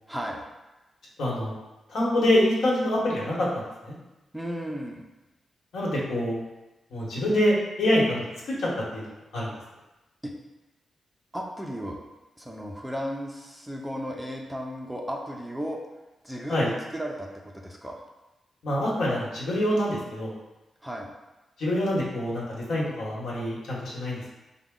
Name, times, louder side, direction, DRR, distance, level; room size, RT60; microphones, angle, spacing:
voice 1, 0.1-0.5 4.3-5.0 10.2-10.3 11.3-12.0 12.4-15.8 16.2-18.0 20.8-21.1, equal, 5° right, -1 dB, 0.4 m, -34 dB
voice 2, 1.2-1.5 1.9-3.9 5.7-6.4 6.9-9.5 16.5-16.7 18.6-20.3 21.6-24.3, left 1 dB, 75° left, -5 dB, 1.1 m, -26 dB
4.7 x 2.1 x 3.6 m, 1.0 s
wide cardioid pair, 145°, 0 cm